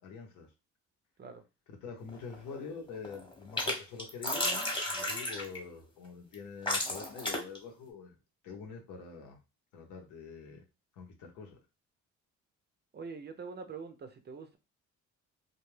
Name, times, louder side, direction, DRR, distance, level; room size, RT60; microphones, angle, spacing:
voice 1, 0.0-0.5 1.7-8.1 8.4-9.4 9.7-10.6 11.0-11.6, left 5 dB, 85° left, 0.8 m, -45 dB
sound 1, 2.1-2.6 2.9-3.7 4.0-5.6 6.3-6.4 6.7-7.6, left 1 dB, 15° left, 0.9 m, -33 dB
voice 2, 12.9-14.6, right 5 dB, 35° right, 0.5 m, -44 dB
2.3 x 2.2 x 3.2 m
cardioid pair, 90°, 30 cm